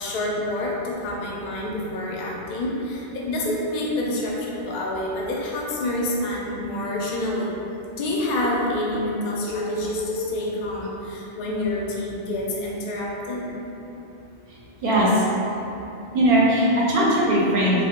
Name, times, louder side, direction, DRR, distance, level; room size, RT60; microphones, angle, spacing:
voice 1, 0.0-7.6 7.9-13.5, left 1 dB, 60° left, -4 dB, 0.5 m, -27 dB
voice 2, 14.8-15.2 16.1-17.8, right 1 dB, 60° right, -6 dB, 0.7 m, -19 dB
2.1 x 2.0 x 3.5 m, 2.9 s
omnidirectional pair, 1.2 m